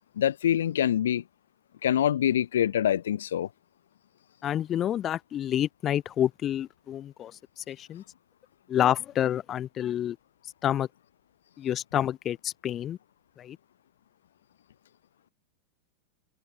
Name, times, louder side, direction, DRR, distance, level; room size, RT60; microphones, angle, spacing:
voice 1, 0.2-1.2 1.8-3.5, left 10 dB, 65° left, 4.1 m, -25 dB
voice 2, 4.4-8.0 8.7-10.2 10.6-10.9 11.6-13.0 13.4-13.6, left 11 dB, 30° left, 2.7 m, -28 dB
figure-of-eight pair, 90°, 0 cm